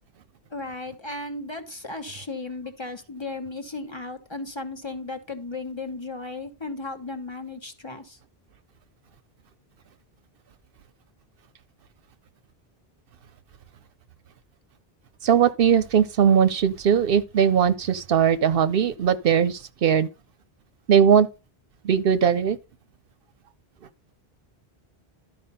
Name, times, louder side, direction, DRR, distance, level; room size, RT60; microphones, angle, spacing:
voice 1, 0.5-8.2, left 2 dB, 25° left, 1.2 m, -35 dB
voice 2, 15.2-20.1 20.9-21.3 21.8-22.6, right 8 dB, 65° right, 0.8 m, -19 dB
12.0 x 4.6 x 5.5 m
omnidirectional pair, 1.0 m